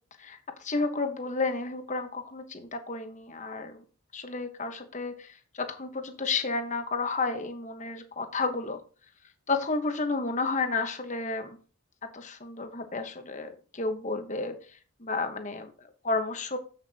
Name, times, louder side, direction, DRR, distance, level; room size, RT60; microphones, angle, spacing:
voice 1, 0.2-3.8 4.1-8.8 9.5-11.6 12.1-14.5 15.0-16.6, left 3 dB, 35° left, 7 dB, 1.1 m, -31 dB
8.1 x 7.6 x 2.8 m, 0.38 s
head